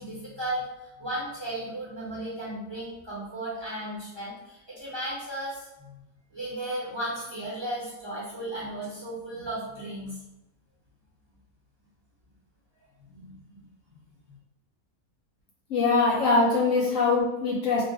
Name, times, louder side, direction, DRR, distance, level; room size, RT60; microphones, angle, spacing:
voice 1, 0.0-6.0 6.3-10.2 13.1-14.0 14.3-14.4, right 1 dB, 20° right, -9 dB, 1.0 m, -35 dB
voice 2, 15.7-17.8, left 3 dB, 65° left, -3 dB, 1.0 m, -22 dB
2.5 x 2.4 x 3.6 m, 0.95 s
omnidirectional pair, 1.5 m